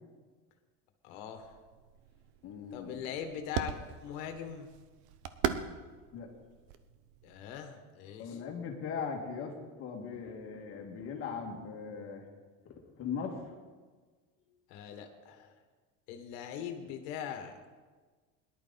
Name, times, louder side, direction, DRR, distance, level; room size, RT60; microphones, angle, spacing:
voice 1, 1.0-1.5 2.7-3.7 4.0-4.7 7.2-8.4 14.7-15.5 16.1-17.6, left 8 dB, 70° left, 6 dB, 1.7 m, -41 dB
sound 1, 1.4-7.7, right 9 dB, 65° right, 0.9 m, -40 dB
voice 2, 2.4-3.0 6.1-6.3 8.2-12.3 12.7-13.4, left 6 dB, 40° left, 2 dB, 2.1 m, -39 dB
18.5 x 11.5 x 4.1 m, 1.4 s
cardioid pair, 150°, 34 cm